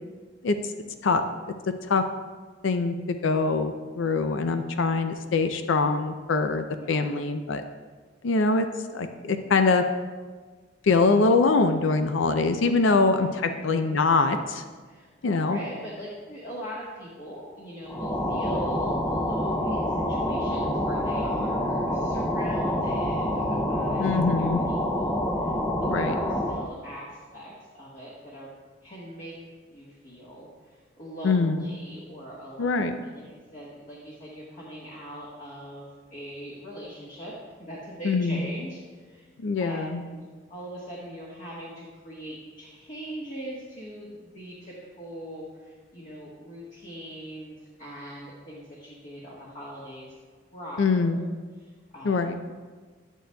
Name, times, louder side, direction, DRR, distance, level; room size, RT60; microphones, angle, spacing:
voice 1, 2.6-7.6 8.2-8.7 8.9-9.8 10.8-14.6 15.2-15.6 24.0-24.6 25.9-26.2 31.2-31.6 32.6-33.0 38.0-38.4 39.4-40.0 50.8-51.2 52.0-52.3, left 3 dB, 80° left, 7 dB, 0.5 m, -23 dB
voice 2, 6.8-7.1 13.2-14.0 14.8-25.5 25.8-28.5 28.8-29.3 29.7-37.3 37.6-39.3 39.6-50.1 50.5-51.2 51.6-52.2, equal, 40° left, -5 dB, 1.3 m, -41 dB
sound 1, 17.9-26.7, left 1 dB, 10° left, 0.5 m, -27 dB
11.0 x 9.0 x 2.3 m, 1.4 s
head